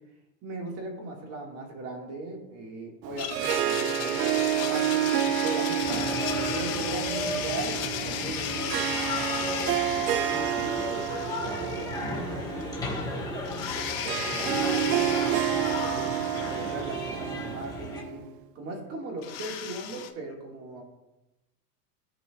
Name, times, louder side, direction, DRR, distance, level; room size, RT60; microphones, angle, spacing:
voice 1, 0.4-8.8 10.2-16.1 16.5-18.3 18.6-20.8, right 2 dB, 30° right, 1 dB, 1.8 m, -39 dB
Harp, 3.0-18.3, right 11 dB, 85° right, 0.6 m, -30 dB
Domestic sounds home sounds, 3.2-12.3 12.6-12.7 13.5-17.4 19.2-20.1, left 9 dB, 70° left, 1.3 m, -36 dB
sound 1, 5.8-18.0, left 2 dB, 10° left, 1.3 m, -35 dB
14.0 x 4.9 x 2.3 m, 0.99 s
supercardioid pair, 140°, 47 cm